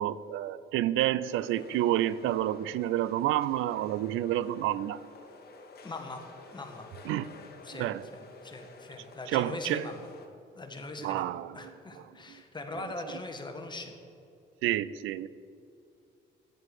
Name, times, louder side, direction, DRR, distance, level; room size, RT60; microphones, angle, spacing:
voice 1, 0.0-5.0 7.1-7.3 7.8-8.1 9.3-9.9 11.0-11.6 12.3-12.4 14.6-15.3, right 13 dB, 85° right, 17 dB, 0.4 m, -29 dB
sound 1, 1.2-10.3, left 4 dB, 50° left, 1.3 m, -52 dB
voice 2, 5.8-6.9 7.6-10.1 10.6-11.3 11.5-13.9, left 2 dB, 20° left, 4 dB, 1.5 m, -41 dB
10.5 x 7.7 x 4.7 m, 2.6 s
cardioid pair, 90°, 20 cm